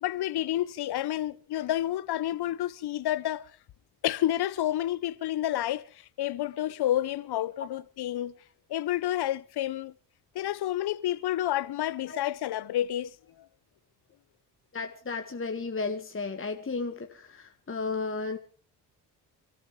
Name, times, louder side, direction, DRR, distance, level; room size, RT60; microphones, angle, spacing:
voice 1, 0.0-3.5 4.0-5.8 6.2-8.3 8.7-9.9 10.3-13.1 13.4-13.5, left 13 dB, 55° left, 0.9 m, -29 dB
voice 2, 14.7-18.4, left 4 dB, 25° left, 1.7 m, -34 dB
28.5 x 14.0 x 3.3 m
hypercardioid pair, 45°, 46 cm